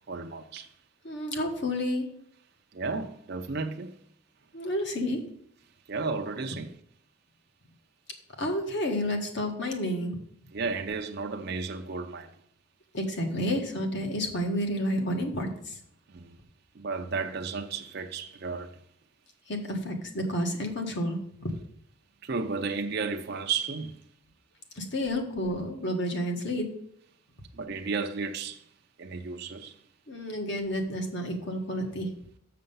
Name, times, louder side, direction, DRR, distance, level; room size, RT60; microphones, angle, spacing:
voice 1, 0.1-0.7 2.7-4.0 5.9-6.8 10.5-12.4 16.1-16.4 16.7-18.8 22.2-24.0 27.5-28.7 29.0-29.8, right 4 dB, 50° right, 0.5 m, -33 dB
voice 2, 1.0-2.1 4.5-5.2 8.4-10.2 12.9-15.8 19.5-21.5 24.7-26.7 30.1-32.1, equal, 55° left, 1.5 m, -30 dB
6.7 x 6.6 x 5.5 m
head